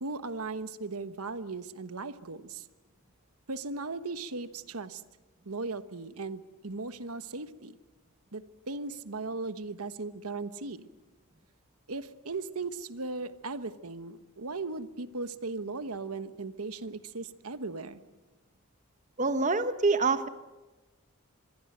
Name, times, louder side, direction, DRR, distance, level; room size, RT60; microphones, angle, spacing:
voice 1, 0.0-2.6 3.5-5.0 5.4-7.8 8.3-10.9 11.9-18.0, right 3 dB, 90° right, 12 dB, 1.2 m, -37 dB
voice 2, 19.2-20.3, right 3 dB, 35° right, 11 dB, 1.0 m, -26 dB
25.5 x 22.0 x 8.0 m, 1.2 s
head